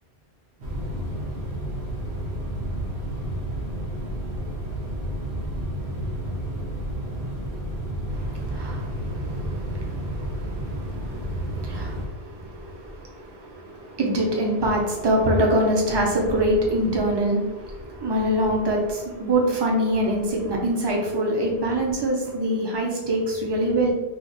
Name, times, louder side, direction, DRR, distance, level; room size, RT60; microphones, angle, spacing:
sound 1, 0.6-12.1, right 1 dB, 90° right, 1.1 m, -31 dB
voice 1, 8.1-23.9, right 1 dB, 30° right, -1 dB, 0.6 m, -25 dB
3.1 x 2.4 x 3.9 m, 1.2 s
omnidirectional pair, 1.1 m